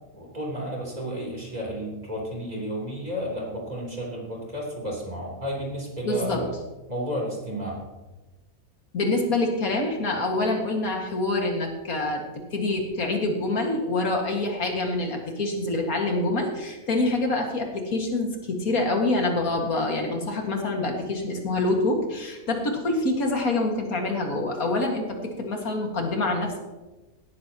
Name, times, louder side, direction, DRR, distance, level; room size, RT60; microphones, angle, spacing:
voice 1, 0.1-6.5 6.9-7.8, equal, 30° right, -2 dB, 3.6 m, -32 dB
voice 2, 6.0-6.4 8.9-12.2 12.5-26.6, left 2 dB, 80° left, 1 dB, 2.4 m, -26 dB
17.5 x 13.0 x 2.9 m, 1.1 s
omnidirectional pair, 1.5 m